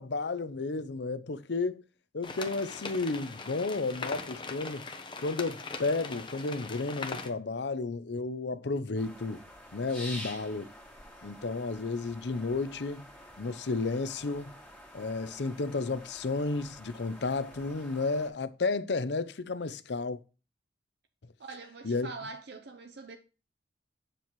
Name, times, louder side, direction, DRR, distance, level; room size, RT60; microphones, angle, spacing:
voice 1, 0.0-1.8 2.1-4.9 5.2-9.4 9.7-10.7 11.2-13.1 13.4-14.5 14.9-20.2 21.8-22.1, left 3 dB, 70° left, 0.6 m, -32 dB
sound 1, 2.2-7.3, left 3 dB, 25° left, 0.9 m, -40 dB
sound 2, 9.0-18.3, left 1 dB, 5° left, 2.4 m, -48 dB
voice 2, 21.4-23.2, right 3 dB, 60° right, 0.6 m, -43 dB
7.8 x 7.1 x 3.1 m
head